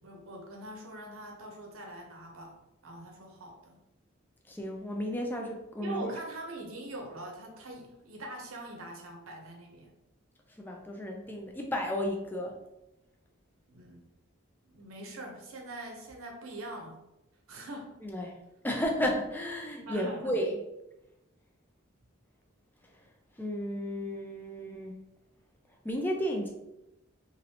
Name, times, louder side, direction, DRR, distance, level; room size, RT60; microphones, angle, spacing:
voice 1, 0.0-2.6 2.8-3.8 5.8-9.9 13.7-14.0 14.7-17.0 17.5-18.0 19.8-20.3, right 1 dB, 85° right, 1 dB, 0.7 m, -43 dB
voice 2, 4.5-6.1 10.6-12.6 18.0-18.4 18.6-20.6 23.4-25.0 25.8-26.5, equal, 10° left, 2 dB, 0.3 m, -33 dB
3.0 x 2.6 x 2.7 m, 0.92 s
head